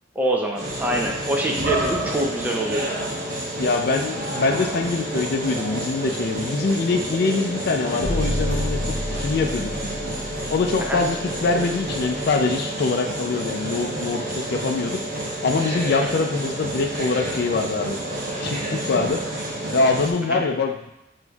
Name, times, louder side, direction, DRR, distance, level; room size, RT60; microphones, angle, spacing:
voice 1, 0.2-2.9 10.8-11.0 16.0-16.1 20.3-20.4, right 1 dB, 10° right, 0 dB, 0.4 m, -25 dB
sound 1, 0.6-20.1, right 1 dB, 50° right, 0.9 m, -29 dB
voice 2, 3.6-8.8 9.2-9.9 10.5-15.0 15.4-18.0 18.4-19.2 19.7-20.9, left 3 dB, 55° left, 4 dB, 0.4 m, -24 dB
sound 2, 8.0-12.1, left 1 dB, 80° right, 0.9 m, -29 dB
6.1 x 2.6 x 2.3 m, 0.89 s
head